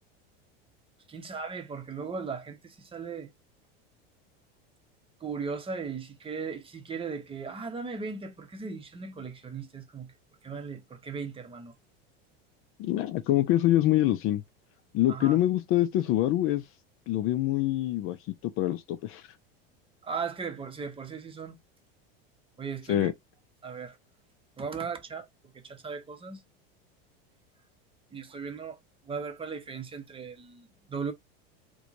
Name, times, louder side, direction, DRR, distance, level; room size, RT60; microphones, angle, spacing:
voice 1, 1.1-3.3 5.2-10.1 10.4-11.7 15.1-15.4 20.0-21.6 22.6-23.1 23.6-24.0 24.6-25.3 25.5-26.4 28.1-28.8 29.1-31.1, right 5 dB, 20° right, 0.8 m, -37 dB
voice 2, 12.8-14.4 14.9-16.6 17.1-18.2 18.4-19.2 22.9-23.1, left 14 dB, 45° left, 0.5 m, -25 dB
4.4 x 2.2 x 2.6 m
supercardioid pair, 115°, 30 cm